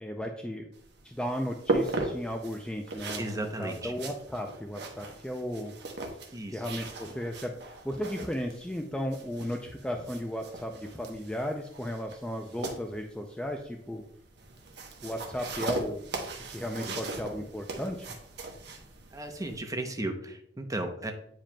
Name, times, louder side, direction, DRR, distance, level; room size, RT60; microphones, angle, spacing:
voice 1, 0.0-0.7 1.0-5.7 6.1-6.2 6.5-14.0 15.0-16.0 16.5-18.1, equal, 5° left, 3 dB, 0.4 m, -35 dB
sound 1, 0.7-19.6, right 2 dB, 65° right, 1.0 m, -38 dB
voice 2, 3.2-3.9 6.3-6.6 16.8-17.0 19.1-21.1, right 1 dB, 20° right, 5 dB, 0.7 m, -35 dB
8.7 x 4.9 x 2.2 m, 0.72 s
head